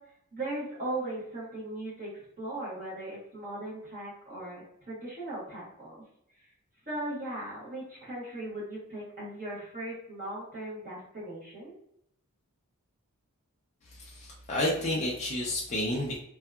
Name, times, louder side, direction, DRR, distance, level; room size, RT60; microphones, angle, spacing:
voice 1, 0.3-2.1 2.4-6.0 6.9-11.7, right 1 dB, 40° right, -7 dB, 1.0 m, -38 dB
voice 2, 13.9-16.2, left 1 dB, 30° left, -4 dB, 0.4 m, -30 dB
2.7 x 2.2 x 2.2 m, 0.73 s
head